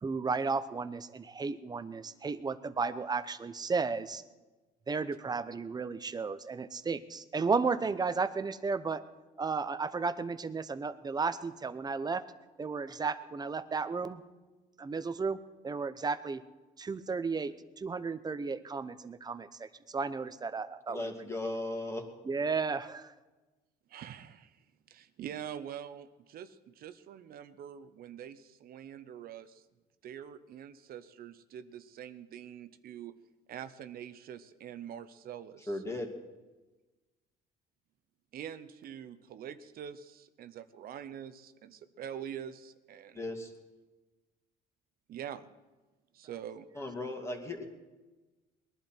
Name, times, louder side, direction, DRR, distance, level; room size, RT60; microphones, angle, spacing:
voice 1, 0.0-4.2 4.9-9.0 9.4-12.3 12.6-14.2 14.8-16.4 16.8-21.1 22.2-23.1, right 4 dB, 25° right, 13 dB, 0.8 m, -34 dB
voice 2, 20.9-22.0 35.7-36.1 43.1-43.5 46.8-47.7, left 2 dB, 15° left, 2 dB, 2.4 m, -36 dB
voice 3, 23.9-24.6 24.9-29.6 30.0-33.1 33.5-35.8 38.3-43.2 45.1-45.5 46.1-46.7, right 9 dB, 60° right, 12 dB, 0.8 m, -45 dB
21.0 x 11.5 x 4.5 m, 1.2 s
cardioid pair, 110°, 17 cm